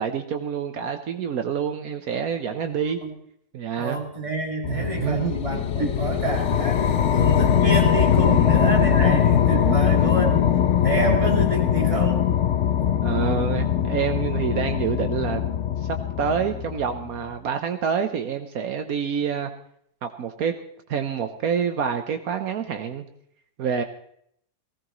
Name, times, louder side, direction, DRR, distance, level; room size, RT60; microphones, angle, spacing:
voice 1, 0.0-3.0 3.5-4.0 4.7-5.9 8.3-8.5 9.0-9.2 9.7-10.2 13.0-15.4 16.2-19.5 20.0-20.5 20.9-23.0 23.6-23.8, right 7 dB, 75° right, 7 dB, 1.3 m, -27 dB
voice 2, 3.8-10.5 10.8-12.3, right 1 dB, 20° right, 1 dB, 2.5 m, -28 dB
sound 1, 4.6-17.2, left 9 dB, 60° left, 0.9 m, -21 dB
18.5 x 16.5 x 3.1 m, 0.68 s
omnidirectional pair, 1.5 m